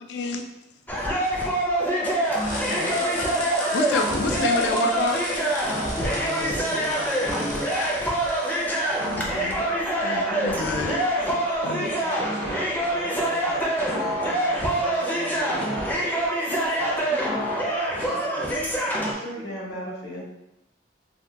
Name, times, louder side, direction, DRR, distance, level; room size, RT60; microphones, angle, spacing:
voice 1, 0.1-0.4 3.7-5.2 9.0-9.7 10.0-11.0 11.6-11.9, left 4 dB, 70° left, 5 dB, 0.4 m, -28 dB
sound 1, 0.9-19.1, right 1 dB, 10° left, 0.5 m, -25 dB
sound 2, 2.2-9.5, left 2 dB, 45° left, 0.9 m, -37 dB
voice 2, 2.8-3.6 11.7-16.3 16.7-17.7 18.0-18.5, right 2 dB, 60° right, -1 dB, 0.3 m, -40 dB
voice 3, 5.9-7.9 17.1-17.4 19.1-20.2, equal, 85° left, -4 dB, 1.0 m, -34 dB
2.7 x 2.2 x 3.4 m, 0.85 s
head